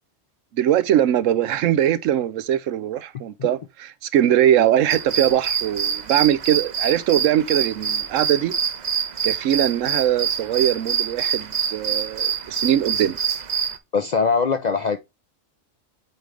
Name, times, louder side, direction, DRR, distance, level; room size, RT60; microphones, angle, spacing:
voice 1, 0.5-8.5 9.2-13.2, right 11 dB, 80° right, 1.0 m, -21 dB
sound 1, 4.9-13.8, right 8 dB, 45° right, 0.6 m, -26 dB
voice 2, 13.9-15.0, left 5 dB, 55° left, 0.5 m, -21 dB
8.3 x 3.7 x 3.3 m
omnidirectional pair, 1.3 m